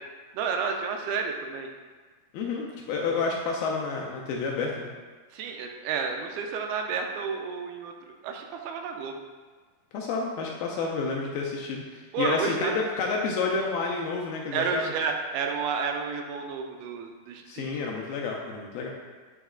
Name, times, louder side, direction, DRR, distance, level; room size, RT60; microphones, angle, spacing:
voice 1, 0.3-1.7 5.3-7.9 8.2-9.2 12.1-12.8 14.5-17.7, right 5 dB, 85° right, 3 dB, 2.4 m, -30 dB
voice 2, 2.3-4.9 9.9-14.9 17.5-18.9, left 4 dB, 80° left, -1 dB, 2.2 m, -30 dB
8.8 x 3.0 x 3.6 m, 1.4 s
omnidirectional pair, 4.6 m